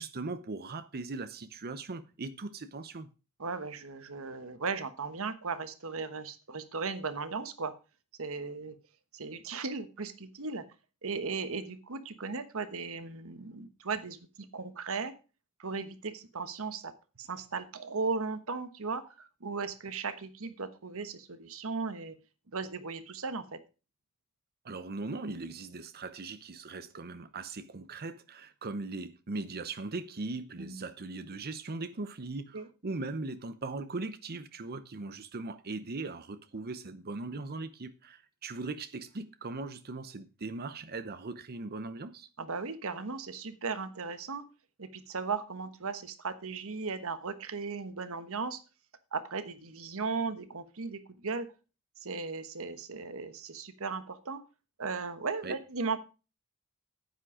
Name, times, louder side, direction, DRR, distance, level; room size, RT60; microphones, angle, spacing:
voice 1, 0.0-3.1 24.6-42.3 55.4-55.6, right 3 dB, 45° right, 0.8 m, -39 dB
voice 2, 3.4-7.7 8.2-8.8 9.1-10.6 11.0-15.1 15.6-22.2 22.5-23.6 30.6-30.8 32.5-32.7 42.4-44.4 44.8-48.6 49.1-51.5 52.0-54.4 54.8-56.0, right 4 dB, 70° right, 1.2 m, -37 dB
9.6 x 8.7 x 4.9 m
head